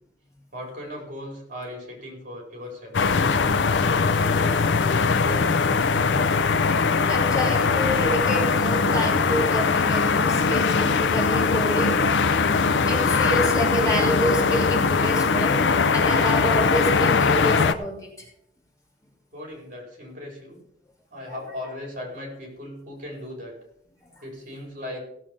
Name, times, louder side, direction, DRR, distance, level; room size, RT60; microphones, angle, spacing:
voice 1, 0.5-3.0 5.2-6.3 19.3-20.6 21.1-23.5 24.2-25.0, left 1 dB, 45° right, 0 dB, 4.6 m, -38 dB
sound 1, 2.9-17.7, left 4 dB, 80° left, 0.6 m, -21 dB
voice 2, 7.1-12.0 12.4-12.6 12.9-15.6 15.9-18.3, equal, 20° left, -2 dB, 2.9 m, -28 dB
16.5 x 7.5 x 5.3 m, 0.74 s
head